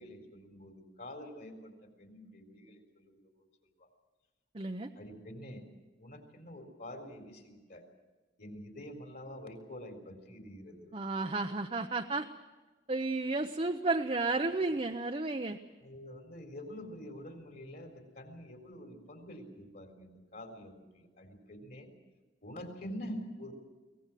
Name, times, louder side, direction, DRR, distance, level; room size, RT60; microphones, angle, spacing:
voice 1, 0.0-3.5 3.8-3.9 5.0-5.6 6.0-7.8 8.4-11.0 15.8-21.9 22.4-23.5, equal, 50° left, 4 dB, 3.8 m, -47 dB
voice 2, 4.5-4.9 10.9-12.3 12.9-15.6, right 3 dB, 30° right, 5 dB, 0.7 m, -32 dB
24.0 x 18.5 x 7.5 m, 1.2 s
head